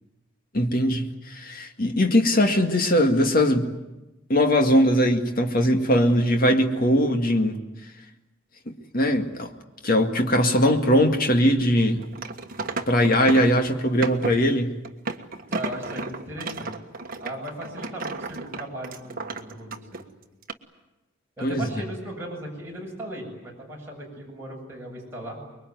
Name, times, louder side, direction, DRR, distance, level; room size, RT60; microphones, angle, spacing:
voice 1, 0.5-3.7 4.3-7.6 8.7-9.5 9.8-12.1 12.9-14.7 21.4-21.7, equal, 45° left, 4 dB, 2.1 m, -20 dB
sound 1, 12.0-13.6 14.0-14.4 14.8-20.0 20.4-20.5, right 3 dB, 45° right, 1.5 m, -33 dB
voice 2, 15.5-16.8 17.2-20.0 21.4-25.4, right 1 dB, 10° right, -3 dB, 7.7 m, -37 dB
25.5 x 22.5 x 9.5 m, 1.0 s
head